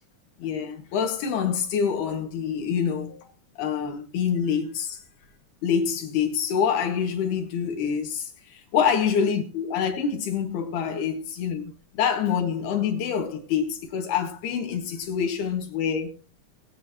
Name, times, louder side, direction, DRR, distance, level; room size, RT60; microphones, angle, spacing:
voice 1, 0.4-3.3 3.6-5.0 5.6-16.1, left 7 dB, 90° left, 4.0 m, -26 dB
21.0 x 9.4 x 3.0 m
omnidirectional pair, 4.4 m